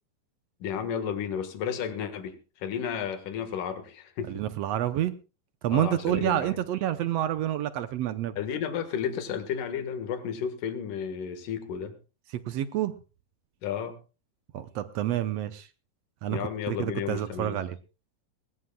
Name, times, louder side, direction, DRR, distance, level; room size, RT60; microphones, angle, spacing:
voice 1, 0.6-4.3 5.7-6.6 8.4-11.9 13.6-14.0 16.2-17.6, left 8 dB, 75° left, 8 dB, 3.2 m, -32 dB
voice 2, 4.3-5.1 5.6-8.4 12.5-12.9 14.5-15.7 16.2-17.8, right 12 dB, 75° right, 11 dB, 1.5 m, -28 dB
20.5 x 19.5 x 2.3 m, 0.33 s
omnidirectional pair, 3.8 m